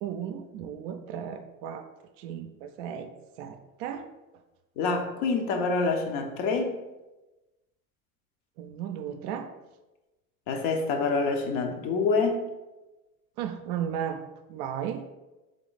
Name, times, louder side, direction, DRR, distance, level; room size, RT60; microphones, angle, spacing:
voice 1, 0.0-1.9 2.2-3.1 3.4-4.1 8.6-9.5 13.4-14.2 14.5-15.0, right 9 dB, 50° right, 7 dB, 0.4 m, -35 dB
voice 2, 4.8-6.8 10.5-12.5, left 4 dB, 50° left, 4 dB, 0.8 m, -26 dB
3.6 x 3.1 x 3.9 m, 1.1 s
hypercardioid pair, 75°, 44 cm